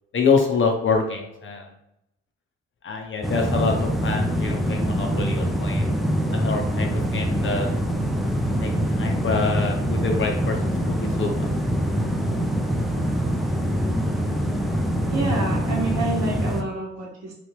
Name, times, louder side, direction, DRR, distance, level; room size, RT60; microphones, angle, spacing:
voice 1, 0.1-1.7 2.8-5.9 6.3-7.7 8.6-11.5, left 4 dB, 40° left, 2 dB, 0.7 m, -26 dB
sound 1, 3.2-16.6, equal, ahead, 0.5 m, -24 dB
voice 2, 15.1-17.3, right 2 dB, 55° right, -1 dB, 1.1 m, -28 dB
3.0 x 2.4 x 3.2 m, 0.87 s
hypercardioid pair, 50°, 32 cm